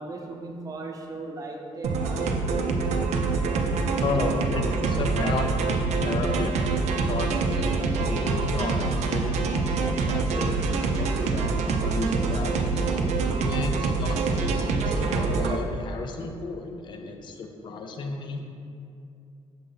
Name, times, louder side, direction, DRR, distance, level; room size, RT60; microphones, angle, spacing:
voice 1, 0.0-2.4, right 2 dB, 30° right, 1 dB, 0.7 m, -37 dB
sound 1, 1.8-15.6, right 4 dB, 75° right, 0.5 m, -25 dB
voice 2, 4.0-12.9 13.4-18.4, left 4 dB, 40° left, 4 dB, 0.5 m, -33 dB
6.7 x 2.6 x 5.5 m, 2.5 s
cardioid pair, 120°, 12 cm